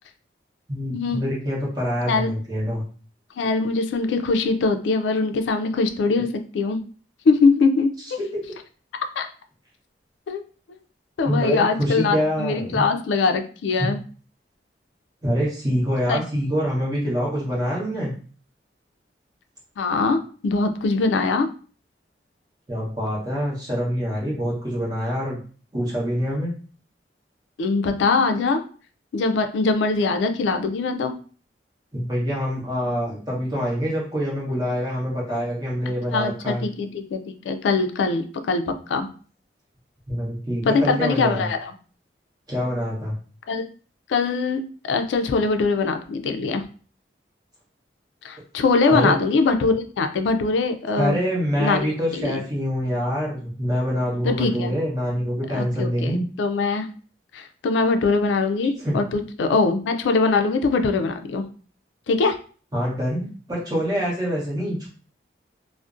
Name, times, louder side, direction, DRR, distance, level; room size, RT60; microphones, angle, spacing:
voice 1, 0.7-2.8 11.2-12.8 15.2-18.1 22.7-25.4 25.7-26.5 31.9-36.6 40.1-41.5 42.5-43.1 48.9-49.1 51.0-56.3 58.8-59.0 62.7-64.9, equal, 20° right, -5 dB, 0.8 m, -25 dB
voice 2, 3.4-6.8 7.3-8.2 9.2-9.3 10.3-10.4 10.7-10.8 11.2-14.0 16.1-16.2 19.8-21.5 27.6-28.6 29.1-31.2 36.1-39.1 40.6-41.7 43.5-43.6 44.1-46.6 48.2-51.2 51.6-52.4 54.2-54.7 55.5-56.9 57.3-61.5 62.1-62.4, left 4 dB, 85° left, 7 dB, 0.3 m, -22 dB
2.5 x 2.0 x 2.4 m, 0.40 s
head